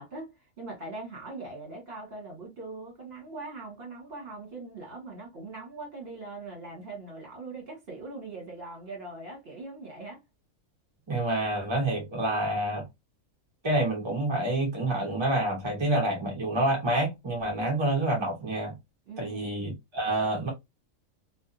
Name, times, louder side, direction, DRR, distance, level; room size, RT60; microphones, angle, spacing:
voice 1, 0.0-10.2 19.1-19.7, right 3 dB, 50° right, 1.5 m, -41 dB
voice 2, 11.1-12.8 13.6-18.7 19.2-20.5, right 1 dB, 25° right, 0.7 m, -28 dB
2.6 x 2.4 x 2.5 m
omnidirectional pair, 1.4 m